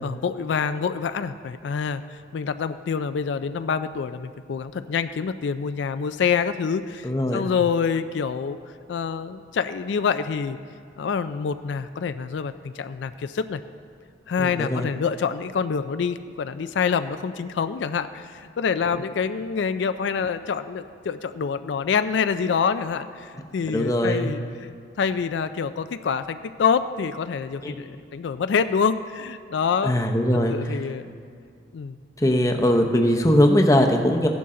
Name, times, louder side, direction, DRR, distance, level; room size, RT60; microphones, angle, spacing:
voice 1, 0.0-8.6 8.9-10.6 11.0-13.6 14.3-24.7 25.0-29.9 30.5-31.1 31.7-32.0, left 6 dB, 75° left, 11 dB, 0.4 m, -26 dB
voice 2, 7.0-7.5 14.4-14.9 23.7-24.3 27.6-27.8 29.8-30.9 32.2-34.3, equal, 15° left, 4 dB, 0.7 m, -21 dB
15.5 x 11.0 x 3.7 m, 2.2 s
head